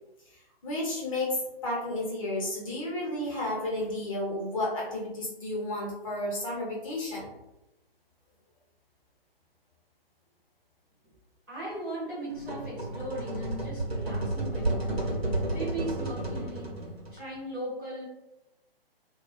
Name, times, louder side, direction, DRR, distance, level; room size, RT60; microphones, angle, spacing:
voice 1, 0.6-7.3, left 1 dB, 35° left, -4 dB, 0.9 m, -32 dB
voice 2, 11.5-18.1, right 1 dB, 5° right, -13 dB, 0.5 m, -38 dB
sound 1, 12.3-17.2, right 2 dB, 80° right, 0.8 m, -32 dB
2.3 x 2.2 x 2.5 m, 0.93 s
figure-of-eight pair, 135°, 30 cm